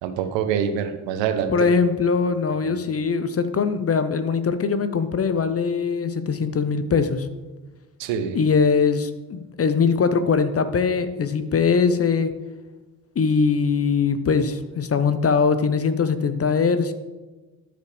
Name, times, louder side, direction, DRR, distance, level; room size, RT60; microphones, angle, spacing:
voice 1, 0.0-1.7 2.6-2.7 8.0-8.4, right 8 dB, 70° right, 8 dB, 1.0 m, -25 dB
voice 2, 1.5-7.3 8.3-12.3 13.2-16.9, left 5 dB, 30° left, 10 dB, 0.7 m, -21 dB
13.5 x 4.9 x 3.4 m, 1.2 s
figure-of-eight pair, 40°, 47 cm